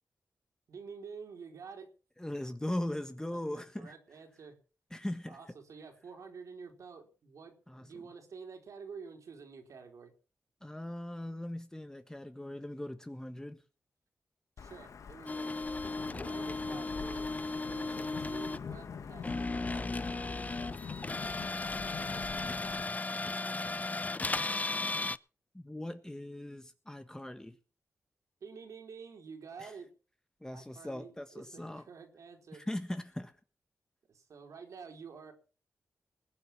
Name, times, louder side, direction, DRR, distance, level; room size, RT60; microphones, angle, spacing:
voice 1, 0.7-1.9 3.3-4.6 5.3-7.5 7.8-10.1 14.6-15.6 16.1-17.3 17.7-20.4 28.4-29.9 30.5-32.6 34.1-35.3, right 5 dB, 80° right, 4.2 m, -49 dB
voice 2, 2.2-3.9 4.9-5.4 7.7-8.0 10.6-13.6 22.4-22.7 25.5-27.6 29.6-29.7 30.4-31.8 32.5-33.3, left 1 dB, 10° left, 1.5 m, -40 dB
Wind / Thunder / Rain, 14.6-22.8, left 6 dB, 80° left, 1.6 m, -44 dB
sound 1, 15.3-18.6 19.2-25.2, left 3 dB, 30° left, 0.7 m, -36 dB
20.5 x 8.0 x 6.0 m
cardioid pair, 60°, 5 cm